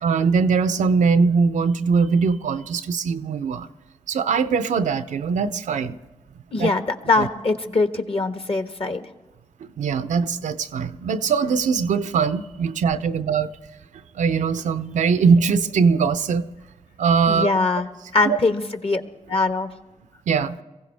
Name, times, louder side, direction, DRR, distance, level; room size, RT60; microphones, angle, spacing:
voice 1, 0.0-3.7 4.1-6.0 6.6-6.7 7.2-7.3 9.6-13.5 14.1-16.5 17.0-17.5 18.2-18.4 20.3-20.6, right 5 dB, 85° right, 0.6 m, -21 dB
voice 2, 6.5-9.0 17.3-17.9 18.1-19.0 19.3-19.7, left 3 dB, 50° left, 1.4 m, -22 dB
22.5 x 15.5 x 3.4 m
supercardioid pair, 40°, 12 cm